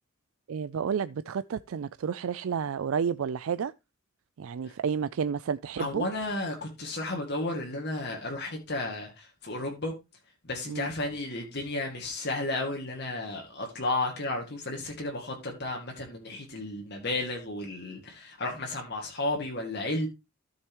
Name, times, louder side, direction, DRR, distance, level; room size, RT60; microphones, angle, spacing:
voice 1, 0.5-3.7 4.4-6.1 10.7-10.9, right 6 dB, 75° right, 0.4 m, -31 dB
voice 2, 5.8-9.9 10.4-20.1, left 2 dB, 50° left, 2.2 m, -33 dB
14.0 x 6.5 x 3.0 m
head